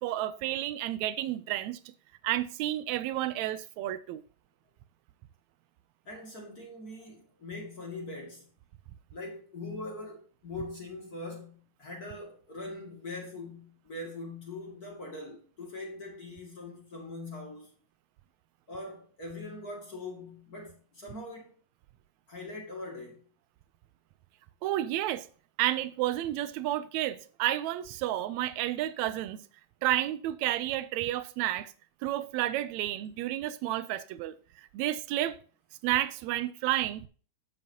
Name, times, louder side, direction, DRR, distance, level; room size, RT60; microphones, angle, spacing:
voice 1, 0.0-1.8 2.2-4.2 24.6-25.3 25.6-29.4 29.8-31.7 32.0-35.4 35.8-37.1, right 14 dB, 80° right, 1.7 m, -31 dB
voice 2, 6.1-8.5 9.1-17.8 18.7-21.6 22.3-23.2, left 2 dB, 30° left, 2.3 m, -42 dB
10.5 x 7.5 x 2.8 m
omnidirectional pair, 3.6 m